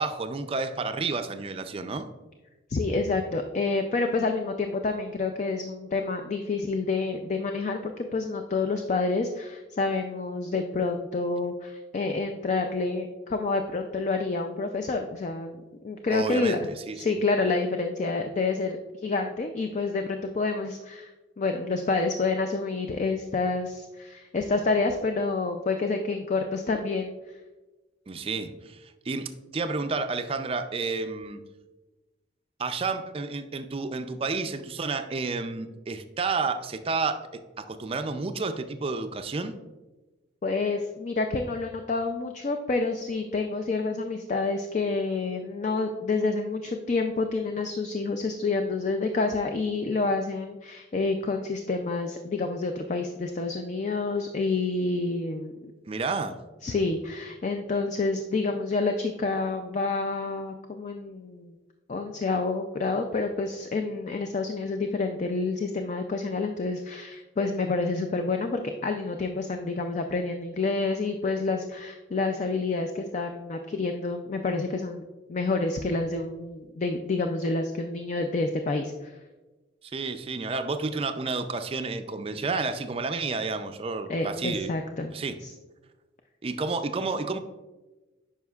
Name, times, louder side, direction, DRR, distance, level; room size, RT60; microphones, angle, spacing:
voice 1, 0.0-2.1 16.1-17.2 28.1-31.4 32.6-39.6 55.9-56.4 79.8-84.7 85.1-85.4 86.4-87.4, right 4 dB, 30° right, 9 dB, 0.4 m, -31 dB
voice 2, 2.7-16.6 16.9-21.1 21.4-27.1 40.4-55.7 56.6-61.6 61.9-79.1 84.1-85.1 85.4-85.5, left 3 dB, 40° left, 5 dB, 0.4 m, -28 dB
9.3 x 5.6 x 2.3 m, 1.2 s
head